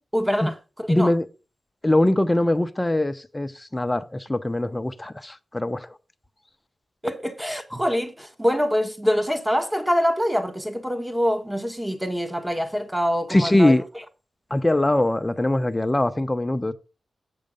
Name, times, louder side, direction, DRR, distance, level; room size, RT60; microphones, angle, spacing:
voice 1, 0.1-1.1 7.0-13.7, equal, 10° right, 1.4 m, -25 dB
voice 2, 0.9-1.3 1.8-6.0 13.3-13.8 14.5-16.7, left 1 dB, 15° left, 0.8 m, -22 dB
8.6 x 6.6 x 5.1 m
wide cardioid pair, 85°, 0 cm